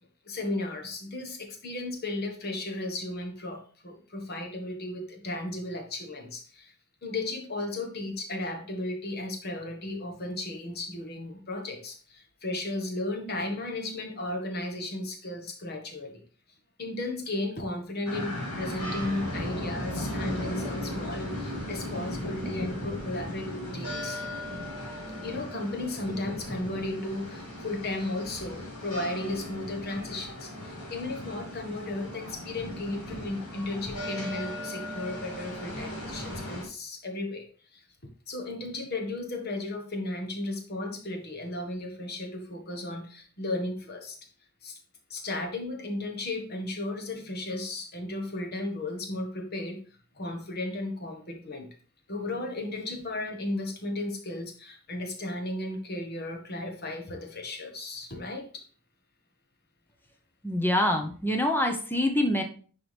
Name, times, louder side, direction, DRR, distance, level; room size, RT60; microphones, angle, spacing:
voice 1, 0.2-6.7 7.0-16.2 16.8-24.2 25.2-37.8 38.3-44.2 44.6-44.8 45.1-49.8 50.1-51.7 52.1-58.6, left 2 dB, 45° left, 4 dB, 1.4 m, -35 dB
sound 1, 18.1-36.6, left 1 dB, 80° left, 2.6 m, -37 dB
voice 2, 60.4-62.4, left 1 dB, 10° left, 3 dB, 0.9 m, -25 dB
10.5 x 4.7 x 3.4 m, 0.42 s
head